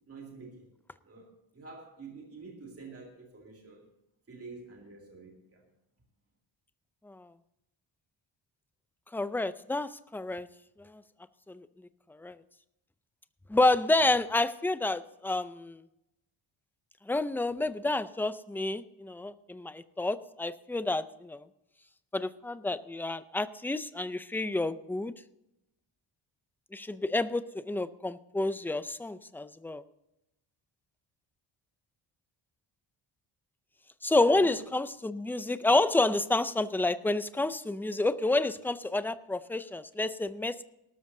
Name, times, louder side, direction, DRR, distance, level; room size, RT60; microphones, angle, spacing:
voice 1, 0.1-0.7 1.0-3.9 4.3-5.6 34.4-34.6, right 4 dB, 30° right, 0 dB, 2.5 m, -48 dB
voice 2, 9.1-10.5 10.8-11.0 11.5-11.7 12.1-12.4 13.5-15.8 17.1-21.4 22.1-25.1 26.7-29.8 34.0-40.6, left 2 dB, 5° left, 13 dB, 0.3 m, -29 dB
18.5 x 13.0 x 2.7 m, 0.88 s
wide cardioid pair, 155°, 48 cm